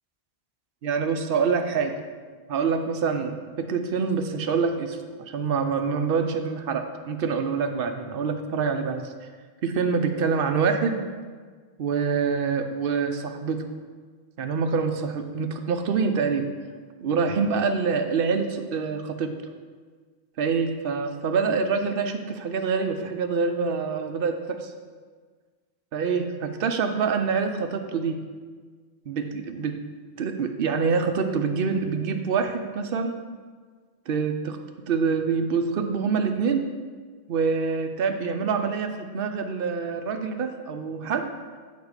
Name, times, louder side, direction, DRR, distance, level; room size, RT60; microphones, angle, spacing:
voice 1, 0.8-2.0 2.5-9.3 9.6-11.0 11.8-13.6 14.4-16.5 17.0-19.4 20.4-24.7 25.9-28.2 29.1-29.8 30.2-33.2 34.1-34.6 34.9-36.7 37.3-41.3, right 5 dB, 65° right, 7 dB, 0.9 m, -26 dB
7.2 x 4.6 x 6.6 m, 1.5 s
omnidirectional pair, 1.1 m